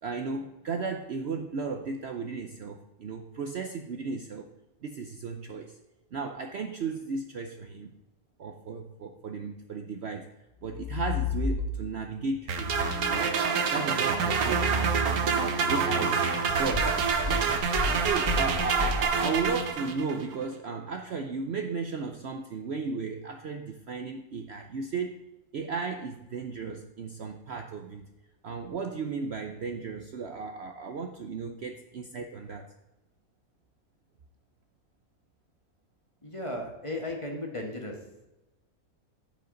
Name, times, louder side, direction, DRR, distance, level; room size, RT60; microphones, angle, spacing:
voice 1, 0.0-4.5 4.8-5.8 6.1-7.9 8.4-10.3 10.6-12.7 13.1-13.4 13.7-15.1 15.7-16.3 16.6-17.5 18.0-25.2 25.5-28.1 28.4-32.7, right 4 dB, 55° right, 5 dB, 0.8 m, -35 dB
sound 1, 10.6-12.0 12.5-19.5, left 1 dB, 10° right, 2.0 m, -33 dB
sound 2, 12.5-20.2, right 5 dB, 80° right, 1.3 m, -27 dB
voice 2, 36.2-38.0, left 1 dB, 20° left, 0 dB, 1.6 m, -35 dB
15.0 x 5.3 x 3.9 m, 1.0 s
omnidirectional pair, 1.5 m